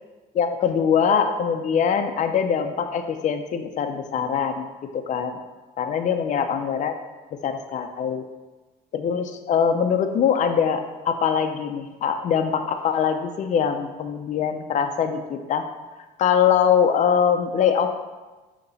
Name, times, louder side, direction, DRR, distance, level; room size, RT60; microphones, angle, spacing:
voice 1, 0.3-4.7 4.9-5.4 5.8-6.9 7.4-8.2 8.9-15.6 16.2-17.9, left 7 dB, 45° left, 6 dB, 0.6 m, -22 dB
6.7 x 2.9 x 5.5 m, 1.2 s
cardioid pair, 110°, 17 cm